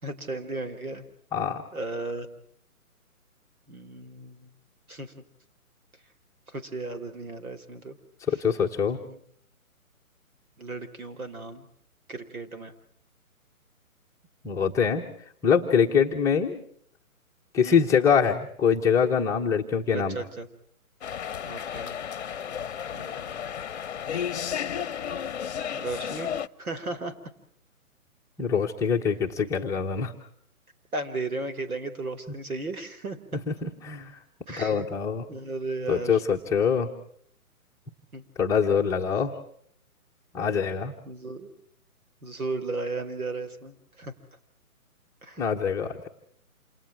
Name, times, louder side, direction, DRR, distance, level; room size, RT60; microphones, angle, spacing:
voice 1, 0.0-1.1 1.7-2.3 3.7-4.5 4.9-5.1 6.5-8.0 9.1-9.2 10.6-11.7 12.1-12.7 17.6-17.8 19.9-20.5 21.4-22.0 22.9-23.5 25.7-26.3 26.6-27.1 30.9-33.2 34.5-34.9 35.3-36.2 38.1-38.2 41.1-41.5 42.2-44.1 45.2-45.4, right 3 dB, 75° right, 8 dB, 4.5 m, -35 dB
voice 2, 1.3-1.6 8.3-9.0 14.4-15.1 15.4-16.6 17.5-20.2 28.4-30.1 33.5-34.2 34.6-35.3 35.9-36.9 38.4-39.4 40.3-40.9 45.4-46.1, left 6 dB, 5° left, -2 dB, 1.0 m, -24 dB
sound 1, 21.0-26.5, left 8 dB, 50° left, 0.9 m, -33 dB
28.5 x 28.0 x 4.7 m, 0.62 s
figure-of-eight pair, 145°, 43 cm